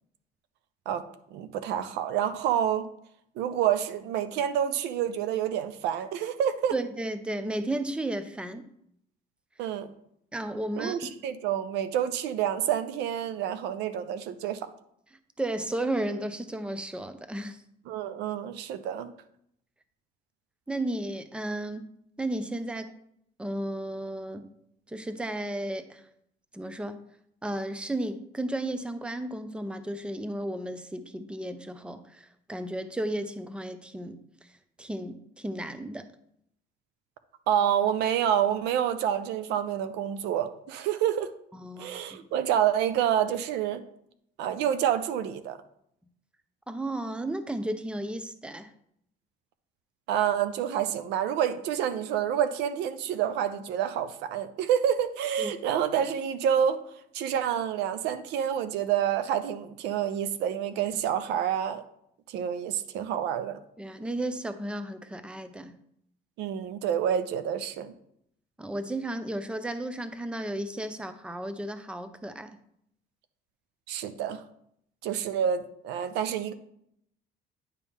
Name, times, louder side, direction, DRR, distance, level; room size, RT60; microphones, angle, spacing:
voice 1, 1.3-2.9 3.4-6.7 9.6-9.9 10.8-14.7 17.9-19.1 37.5-41.3 41.8-43.8 44.4-45.6 50.1-56.8 57.1-61.8 62.3-63.6 66.4-67.9 73.9-74.4 75.0-76.5, right 9 dB, 90° right, 12 dB, 0.6 m, -28 dB
voice 2, 6.7-8.7 10.3-11.1 15.4-17.6 20.7-21.9 22.2-22.9 23.4-24.5 24.9-26.1 26.5-27.0 27.4-34.5 34.8-36.1 41.5-42.3 46.7-48.7 55.4-55.5 63.8-65.8 68.6-72.6, right 1 dB, 5° right, 10 dB, 0.6 m, -34 dB
9.8 x 4.5 x 3.6 m, 0.72 s
cardioid pair, 110°, 17 cm